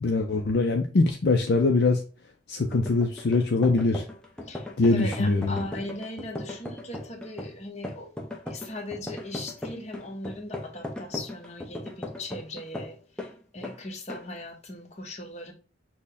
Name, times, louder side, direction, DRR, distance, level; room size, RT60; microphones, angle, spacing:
voice 1, 0.0-2.0 2.5-4.0 4.8-5.5, left 3 dB, 55° left, 0.4 m, -23 dB
sound 1, 2.7-13.3 13.6-13.8 14.1-14.3, left 1 dB, 5° left, 0.5 m, -38 dB
voice 2, 4.5-8.1 8.5-15.5, left 2 dB, 35° left, 0.9 m, -38 dB
6.2 x 2.1 x 3.5 m
head